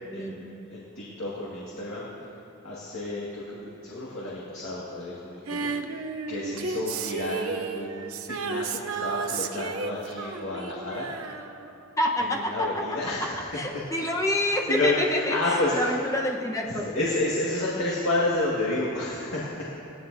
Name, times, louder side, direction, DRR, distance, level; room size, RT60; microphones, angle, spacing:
voice 1, 0.0-2.1 2.6-5.7 6.3-11.1 12.2-13.4 14.7-15.9 16.8-19.6, left 2 dB, 75° left, -7 dB, 2.0 m, -30 dB
Female singing, 5.5-12.1 12.4-12.5, right 5 dB, 85° right, 0.7 m, -33 dB
voice 2, 12.0-12.8 13.2-16.8, left 1 dB, 15° left, -1 dB, 1.0 m, -27 dB
18.0 x 14.5 x 2.7 m, 2.9 s
head